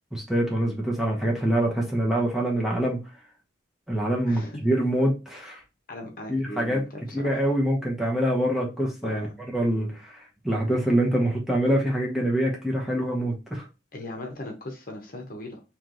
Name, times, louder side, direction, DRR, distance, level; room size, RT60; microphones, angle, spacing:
voice 1, 0.1-3.0 3.9-5.6 6.3-6.8 7.1-9.3 9.5-10.2 10.4-13.7, right 1 dB, ahead, -2 dB, 1.0 m, -25 dB
voice 2, 4.3-4.6 5.9-7.4 9.0-9.3 13.9-15.6, left 1 dB, 50° left, 2 dB, 1.0 m, -38 dB
3.2 x 3.1 x 3.8 m, 0.29 s
head